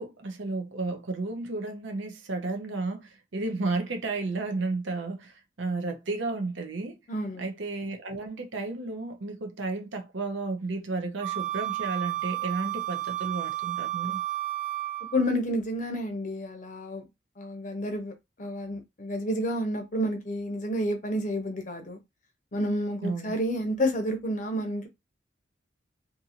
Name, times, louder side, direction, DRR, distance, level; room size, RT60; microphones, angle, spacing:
voice 1, 0.0-5.3 5.6-7.0 7.4-14.2 23.0-23.3, right 3 dB, 80° right, 0.6 m, -32 dB
voice 2, 7.1-7.5 15.1-17.0 17.4-18.1 18.4-22.0 22.5-24.9, equal, 40° left, 0.6 m, -30 dB
Wind instrument woodwind instrument, 11.2-15.2, right 17 dB, 45° right, 0.3 m, -32 dB
2.6 x 2.5 x 2.8 m
head